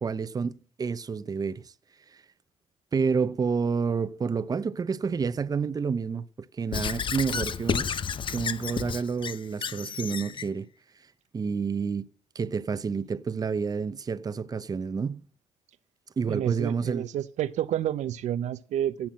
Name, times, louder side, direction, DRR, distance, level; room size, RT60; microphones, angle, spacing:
voice 1, 0.0-1.7 2.1-2.2 2.9-7.9 8.3-10.7 11.3-12.1 12.3-15.2 16.2-17.0, right 5 dB, 30° right, 0.7 m, -29 dB
Squeak / Writing, 6.7-10.5, left 7 dB, 40° left, 0.8 m, -31 dB
voice 2, 16.3-19.1, right 11 dB, 70° right, 0.7 m, -29 dB
16.5 x 6.1 x 7.4 m
cardioid pair, 90°, 12 cm